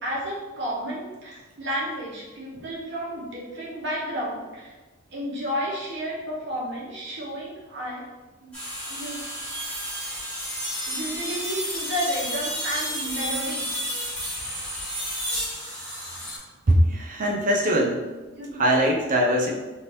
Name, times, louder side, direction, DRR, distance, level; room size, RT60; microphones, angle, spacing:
voice 1, 0.0-4.7 5.1-8.1 8.4-8.5 8.9-9.2 10.9-13.7 18.4-18.6, equal, 55° right, -5 dB, 1.0 m, -31 dB
sound 1, 8.5-16.4, equal, 5° left, 1.0 m, -31 dB
voice 2, 16.7-18.0 18.5-19.5, equal, 40° right, 0 dB, 0.5 m, -21 dB
3.5 x 2.6 x 3.0 m, 1.2 s
head